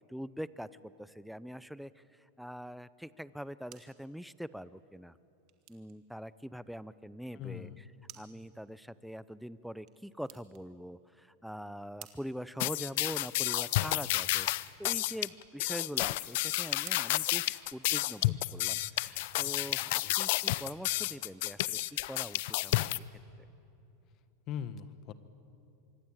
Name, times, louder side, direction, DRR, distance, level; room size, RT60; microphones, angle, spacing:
voice 1, 0.0-5.2 5.7-7.7 8.2-21.8 22.1-23.0, equal, ahead, 16 dB, 0.7 m, -43 dB
sound 1, 3.5-18.2, right 14 dB, 50° right, 1.9 m, -59 dB
voice 2, 7.3-7.8 19.4-19.6 19.9-20.1 24.5-25.1, left 9 dB, 45° left, 12 dB, 1.4 m, -41 dB
sound 2, 12.6-23.0, left 18 dB, 65° left, 0.6 m, -31 dB
25.5 x 23.0 x 9.0 m, 2.7 s
supercardioid pair, 125°, 0 cm